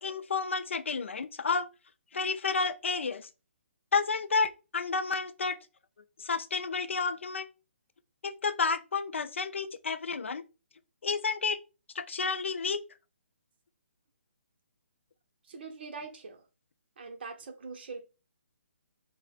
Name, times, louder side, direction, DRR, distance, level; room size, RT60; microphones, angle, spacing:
voice 1, 0.0-1.7 2.1-3.3 3.9-5.6 6.2-7.5 8.2-10.4 11.0-11.6 11.9-12.8, left 4 dB, 65° left, 0.4 m, -31 dB
voice 2, 15.5-16.4 17.0-18.0, right 4 dB, 50° right, 0.7 m, -42 dB
4.7 x 2.1 x 2.4 m
figure-of-eight pair, 140°, 7 cm